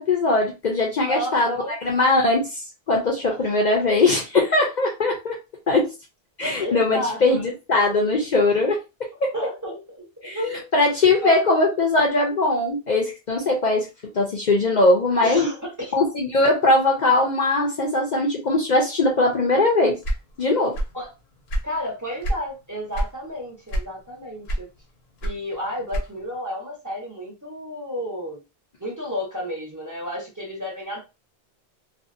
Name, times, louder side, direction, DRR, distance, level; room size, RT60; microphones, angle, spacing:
voice 1, 0.0-1.5 1.8-5.4 5.7-5.9 6.4-8.8 9.2-9.3 10.2-10.4 10.7-13.9 14.1-15.5 15.9-20.0 20.4-20.8, left 2 dB, 50° left, 0 dB, 0.6 m, -20 dB
voice 2, 1.1-1.7 6.6-7.5 9.3-10.7 11.2-11.4 15.2-15.9 20.9-21.1 21.6-24.7 25.2-28.4 28.8-31.0, equal, 20° right, -2 dB, 0.9 m, -31 dB
sound 1, 20.0-21.0 21.3-22.5 22.9-23.2 23.7-24.1 24.5-26.4, right 1 dB, 80° left, 1.0 m, -26 dB
2.6 x 2.3 x 2.5 m, 0.27 s
omnidirectional pair, 1.0 m